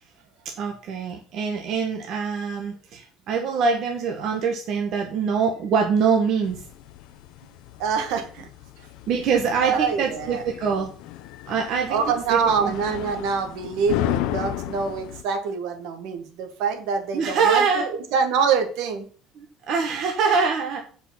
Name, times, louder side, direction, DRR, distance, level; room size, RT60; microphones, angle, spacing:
voice 1, 0.4-6.6 9.1-10.9 11.5-12.0 12.3-12.7 17.1-17.9 19.4-20.8, right 5 dB, 45° right, 2 dB, 1.1 m, -24 dB
sound 1, 6.5-15.2, left 13 dB, 75° left, 0.7 m, -34 dB
voice 2, 7.8-8.5 8.8-8.9 9.6-10.4 11.9-19.1, right 6 dB, 65° right, 7 dB, 1.6 m, -25 dB
8.0 x 4.9 x 5.8 m, 0.41 s
cardioid pair, 175°, 0 cm